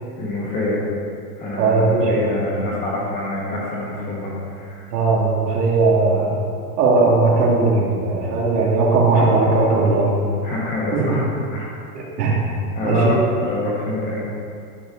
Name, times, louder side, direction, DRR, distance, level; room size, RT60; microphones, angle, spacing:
voice 1, 0.2-0.9 1.4-4.9 10.4-11.2 11.5-11.8 12.7-14.2, left 1 dB, 20° left, -4 dB, 1.2 m, -25 dB
voice 2, 1.5-2.1 4.9-6.3 6.8-10.2 10.9-11.2 11.9-12.4 12.8-13.2, right 3 dB, 85° right, -2 dB, 2.1 m, -18 dB
11.5 x 5.0 x 3.7 m, 2.3 s
supercardioid pair, 170°, 47 cm